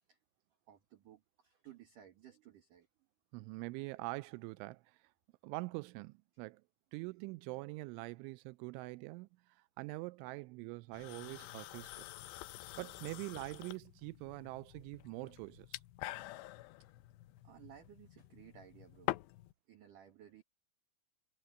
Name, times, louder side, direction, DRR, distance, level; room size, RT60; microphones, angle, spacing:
voice 1, 0.7-2.9 11.3-11.5 12.3-12.6 13.3-13.4 17.4-19.2 19.7-20.4, right 10 dB, 55° right, 2.5 m, -58 dB
voice 2, 3.3-5.0 5.4-6.6 6.9-12.1 12.8-15.8, right 22 dB, 85° right, 2.8 m, -44 dB
sound 1, 10.9-19.5, left 18 dB, 85° left, 2.5 m, -46 dB
omnidirectional pair, 5.8 m